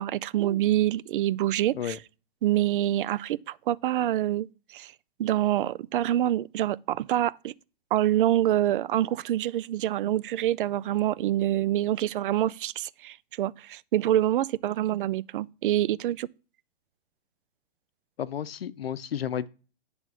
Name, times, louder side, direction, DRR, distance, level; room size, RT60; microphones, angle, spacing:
voice 1, 0.0-2.0 2.4-4.5 4.7-4.9 5.2-7.5 7.9-16.3, right 12 dB, 65° right, 0.4 m, -26 dB
voice 2, 18.2-19.5, left 9 dB, 90° left, 0.7 m, -32 dB
9.0 x 3.5 x 6.1 m
hypercardioid pair, 130°, 29 cm